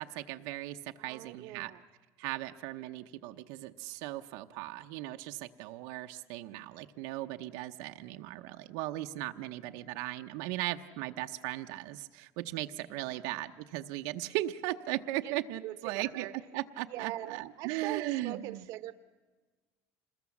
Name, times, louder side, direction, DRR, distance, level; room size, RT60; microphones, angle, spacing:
voice 1, 0.0-1.7 2.2-16.3 16.5-18.7, right 16 dB, 90° right, 6 dB, 0.8 m, -37 dB
voice 2, 1.0-1.8 13.1-13.2 15.2-15.3 15.6-16.3 16.9-18.9, right 14 dB, 60° right, 13 dB, 0.9 m, -42 dB
26.5 x 20.5 x 7.2 m, 1.3 s
cardioid pair, 165°, 6 cm